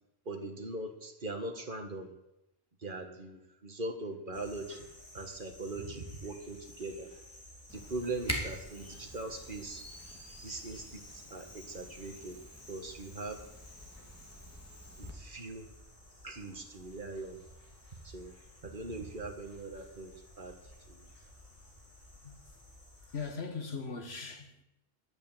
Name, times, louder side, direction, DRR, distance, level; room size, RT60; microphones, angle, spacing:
voice 1, 0.3-2.1 2.8-4.9 5.1-7.1 7.7-9.8 10.4-12.4 12.7-13.4 15.0-15.7 16.2-17.4 18.0-18.3 18.6-20.5 20.9-21.1, right 2 dB, 50° right, 1.7 m, -41 dB
sound 1, 4.3-23.3, left 1 dB, 60° left, 3.5 m, -55 dB
Camera, 7.7-15.1, equal, 15° left, 2.6 m, -45 dB
voice 2, 23.1-24.6, left 5 dB, 80° left, 1.8 m, -39 dB
11.5 x 8.8 x 8.8 m
omnidirectional pair, 1.1 m